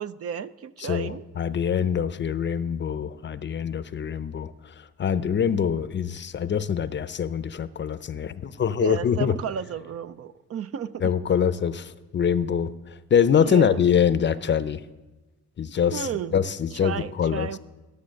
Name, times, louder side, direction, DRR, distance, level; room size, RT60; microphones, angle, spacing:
voice 1, 0.0-1.2 1.8-1.9 8.8-11.1 13.4-13.8 15.9-16.4 16.7-17.6, right 8 dB, 50° right, 13 dB, 0.5 m, -33 dB
voice 2, 0.8-4.5 5.0-9.3 11.0-12.7 13.1-14.8 15.6-17.5, left 8 dB, 40° left, 14 dB, 0.6 m, -24 dB
14.0 x 7.0 x 6.4 m, 1.1 s
cardioid pair, 90°, 30 cm